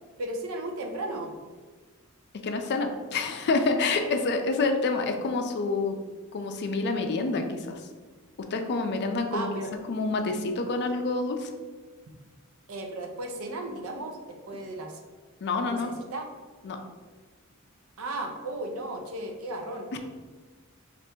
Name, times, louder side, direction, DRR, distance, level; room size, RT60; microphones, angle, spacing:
voice 1, 0.2-1.3 9.3-9.7 12.7-15.0 15.6-16.3 18.0-19.9, right 1 dB, 75° right, 3 dB, 0.6 m, -35 dB
voice 2, 2.4-6.0 6.3-7.8 8.4-9.5 9.9-11.5 15.4-15.9 16.6-16.8 19.9-20.0, left 3 dB, 50° left, 6 dB, 0.4 m, -27 dB
3.3 x 2.5 x 4.3 m, 1.4 s
head